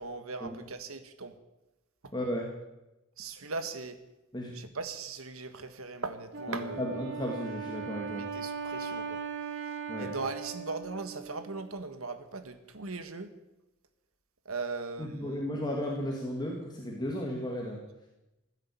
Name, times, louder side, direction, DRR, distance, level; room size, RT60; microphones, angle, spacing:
voice 1, 0.0-1.3 3.2-4.0 4.5-6.8 8.1-9.2 10.0-13.3 14.4-15.4, right 3 dB, 85° right, 10 dB, 1.6 m, -39 dB
voice 2, 2.1-2.5 4.3-4.5 6.5-8.2 9.9-10.1 15.0-17.8, equal, 20° left, -1 dB, 2.0 m, -34 dB
Wind instrument woodwind instrument, 6.3-11.7, right 5 dB, 60° right, 2.5 m, -39 dB
15.5 x 9.9 x 8.4 m, 0.99 s
head